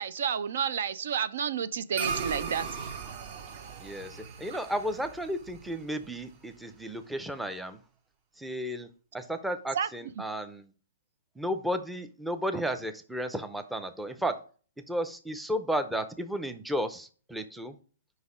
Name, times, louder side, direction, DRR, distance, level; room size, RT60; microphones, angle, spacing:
voice 1, 0.0-2.7 9.8-9.9, right 7 dB, 65° right, 0.4 m, -30 dB
sound 1, 1.9-6.6, right 6 dB, 45° right, 0.9 m, -38 dB
voice 2, 3.8-7.8 8.4-8.9 9.1-10.7 11.4-14.4 14.9-17.8, equal, 5° right, 0.5 m, -33 dB
5.1 x 4.0 x 4.9 m
hypercardioid pair, 135°, 0 cm